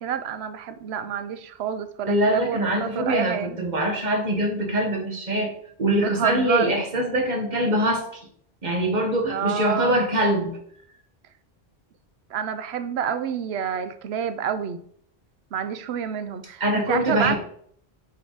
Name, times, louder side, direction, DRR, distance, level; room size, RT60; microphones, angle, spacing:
voice 1, 0.0-3.6 6.0-6.8 9.3-10.0 12.3-14.8 15.5-17.4, right 8 dB, 80° right, 10 dB, 0.9 m, -28 dB
voice 2, 2.1-5.5 5.8-8.2 8.6-10.5 16.6-17.4, right 1 dB, 45° right, 1 dB, 1.4 m, -23 dB
8.1 x 3.5 x 3.9 m, 0.64 s
omnidirectional pair, 1.1 m